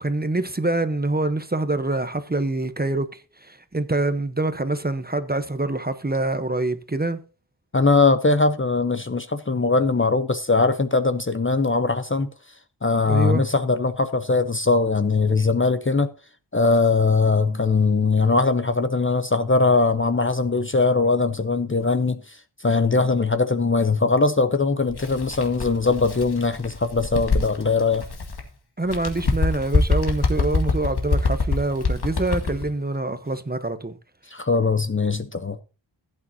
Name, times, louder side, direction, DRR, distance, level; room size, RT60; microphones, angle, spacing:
voice 1, 0.0-7.2 13.1-13.4 28.8-34.0, right 2 dB, 20° right, 1.0 m, -25 dB
voice 2, 7.7-12.3 12.8-16.1 16.5-22.2 22.6-28.1 34.3-35.6, left 3 dB, 25° left, 0.7 m, -21 dB
Bird, 24.9-28.5 28.8-32.7, left 3 dB, 60° left, 2.0 m, -25 dB
15.5 x 8.7 x 2.8 m
wide cardioid pair, 90°, 45 cm